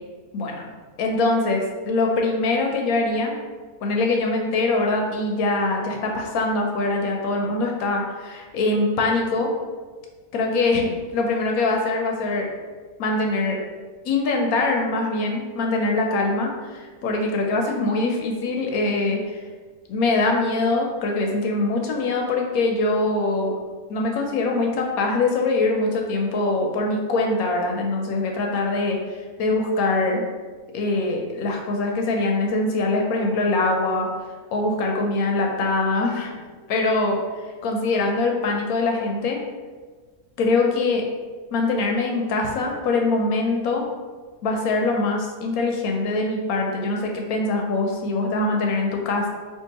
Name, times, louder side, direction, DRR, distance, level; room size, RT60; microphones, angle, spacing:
voice 1, 0.3-0.7 1.0-3.4 3.8-9.5 10.3-12.5 13.0-13.6 14.0-19.4 19.9-23.5 23.9-30.2 30.7-34.1 34.5-36.4 36.7-37.2 37.6-39.4 40.4-41.0 41.5-43.9 44.4-49.3, left 2 dB, 80° left, 1 dB, 1.0 m, -23 dB
4.5 x 2.5 x 2.8 m, 1.4 s
omnidirectional pair, 1.5 m